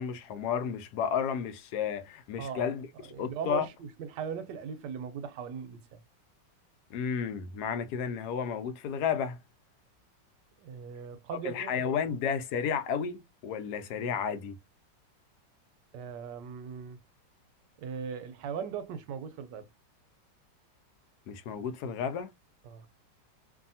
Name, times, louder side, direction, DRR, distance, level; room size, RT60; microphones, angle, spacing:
voice 1, 0.0-3.7 6.9-9.4 11.4-14.6 21.3-22.3, left 7 dB, 70° left, 1.0 m, -32 dB
voice 2, 2.4-6.0 10.6-11.9 15.9-17.0 17.8-19.7 22.6-22.9, right 7 dB, 75° right, 1.1 m, -39 dB
2.7 x 2.6 x 2.6 m
omnidirectional pair, 2.0 m